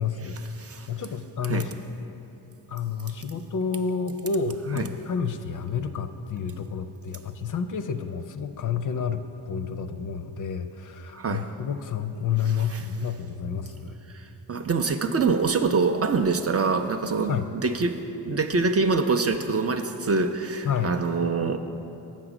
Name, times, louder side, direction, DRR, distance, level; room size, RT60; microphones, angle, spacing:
voice 1, 0.0-0.4 0.9-1.8 2.7-14.0 17.3-17.5 20.6-21.0, left 6 dB, 45° left, 9 dB, 0.5 m, -30 dB
voice 2, 0.6-0.9 1.4-1.7 4.8-4.9 11.1-11.5 12.5-12.8 14.1-17.4 17.6-18.0 18.2-21.6, right 4 dB, 35° right, 7 dB, 0.5 m, -25 dB
7.3 x 6.0 x 5.0 m, 2.9 s
supercardioid pair, 50°, 43 cm